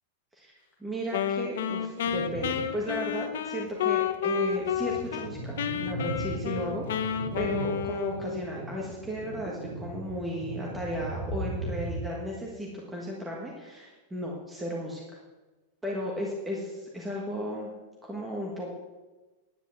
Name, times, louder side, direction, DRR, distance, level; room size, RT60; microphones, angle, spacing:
voice 1, 0.8-15.0 15.8-17.7 18.0-18.7, equal, 5° right, -3 dB, 1.4 m, -35 dB
Wind instrument woodwind instrument, 1.1-5.3 5.6-8.5, left 8 dB, 75° left, 1.0 m, -30 dB
sound 1, 2.0-2.9 3.3-3.4 4.1-12.0, right 2 dB, 50° right, 2.7 m, -38 dB
10.0 x 8.0 x 7.7 m, 1.2 s
supercardioid pair, 180°, 0 cm